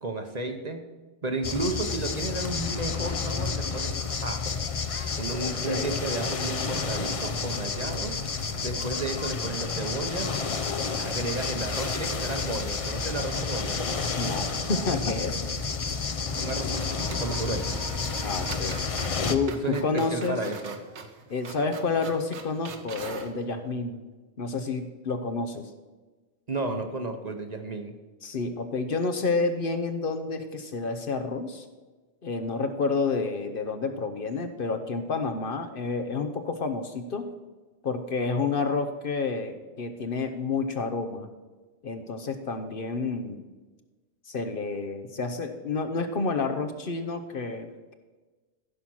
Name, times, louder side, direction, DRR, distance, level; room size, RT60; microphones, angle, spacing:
voice 1, 0.0-0.9 1.2-3.9 4.2-4.6 5.2-8.1 8.6-10.3 11.0-13.8 16.3-17.8 19.6-20.8 26.5-27.9, right 2 dB, 40° right, 5 dB, 0.9 m, -33 dB
sound 1, 1.4-19.4, left 4 dB, 35° left, 0.6 m, -30 dB
voice 2, 5.4-5.9 8.9-9.0 14.1-15.4 18.2-18.8 19.3-20.4 21.3-24.0 24.4-25.7 28.2-31.7 32.2-37.3 37.8-41.3 41.8-43.4 44.3-47.9, left 4 dB, 55° left, 8 dB, 1.0 m, -29 dB
sound 2, 14.7-14.8 16.3-16.5 16.7-23.4, right 4 dB, 75° right, 1.3 m, -42 dB
14.5 x 5.8 x 6.2 m, 1.3 s
omnidirectional pair, 1.2 m